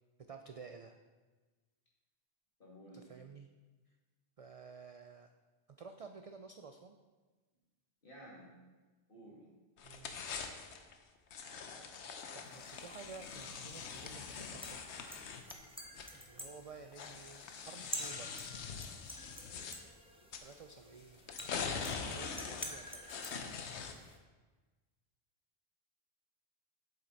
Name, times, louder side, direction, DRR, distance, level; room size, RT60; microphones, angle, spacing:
voice 1, 0.3-1.0 2.9-3.5 4.4-5.3 5.8-6.9 9.8-10.2 12.3-15.1 16.1-18.5 20.4-21.3 21.7-23.0, right 5 dB, 55° right, 6 dB, 0.4 m, -52 dB
voice 2, 2.6-3.1 8.0-8.5 9.1-9.4, right 1 dB, 55° left, -4 dB, 2.5 m, -53 dB
sound 1, 9.8-10.9 11.3-16.4 16.9-19.8 20.3-20.5 21.2-24.1, left 6 dB, 85° left, 1.0 m, -43 dB
sound 2, 12.4-24.2, equal, 5° right, 0.8 m, -50 dB
7.8 x 7.5 x 4.0 m, 1.3 s
omnidirectional pair, 1.1 m